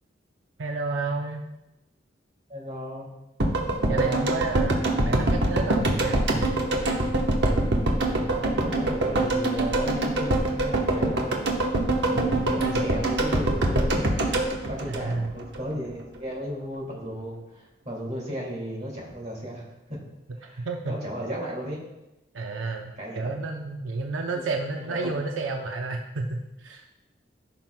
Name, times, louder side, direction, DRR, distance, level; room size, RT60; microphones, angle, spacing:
voice 1, 0.6-1.5 3.9-6.4 12.2-12.4 12.7-12.9 14.9-15.3 20.4-20.9 21.2-21.5 22.3-26.9, right 3 dB, 85° right, 2 dB, 0.6 m, -31 dB
voice 2, 2.5-3.1 3.9-4.3 8.3-11.4 12.1-20.0 20.4-21.8 23.0-23.3 24.3-24.5 24.9-25.1, equal, 35° right, -3 dB, 2.3 m, -35 dB
sound 1, 3.4-15.6 15.9-16.0, right 1 dB, 60° right, 1.1 m, -24 dB
14.5 x 5.8 x 2.2 m, 0.96 s
head